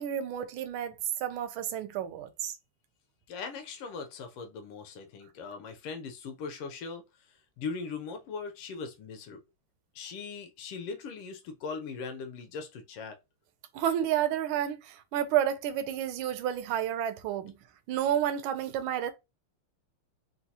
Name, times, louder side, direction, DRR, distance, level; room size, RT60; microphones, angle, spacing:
voice 1, 0.0-2.5 13.7-17.5 17.9-19.1, right 10 dB, 75° right, 1.3 m, -30 dB
voice 2, 3.3-9.4 9.9-13.2, left 5 dB, 90° left, 1.6 m, -40 dB
4.3 x 2.3 x 2.8 m
omnidirectional pair, 2.4 m